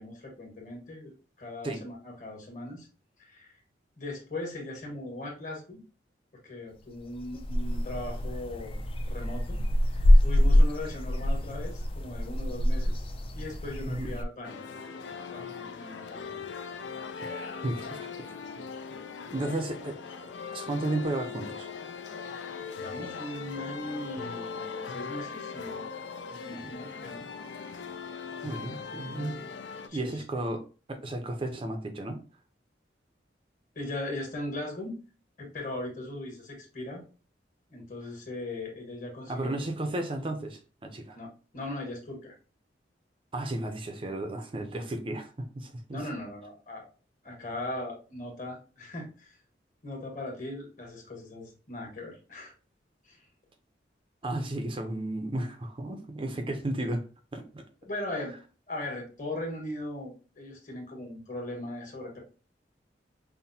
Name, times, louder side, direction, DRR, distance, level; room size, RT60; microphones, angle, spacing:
voice 1, 0.0-2.9 3.2-3.5 4.0-5.8 6.4-8.8 9.1-9.6 10.2-13.1 13.3-14.6 15.3-16.4 22.8-25.9 26.4-27.2 29.9-30.2 33.7-34.9 35.4-37.0 37.7-39.7 41.1-41.3 41.5-42.3 45.9-46.9 47.2-49.3 49.8-52.5 53.0-53.2 57.8-58.3 58.7-62.2, left 1 dB, 45° left, -1 dB, 1.4 m, -39 dB
sound 1, 7.0-14.2, left 1 dB, 30° left, 0.3 m, -25 dB
sound 2, 14.4-29.9, left 5 dB, 90° left, 0.5 m, -40 dB
voice 2, 17.3-18.3 19.3-21.7 26.5-26.8 28.4-29.5 29.9-32.2 39.3-41.2 43.3-46.0 54.2-57.1 57.3-57.6, right 1 dB, 30° right, 5 dB, 0.5 m, -34 dB
5.6 x 2.1 x 2.7 m, 0.35 s
head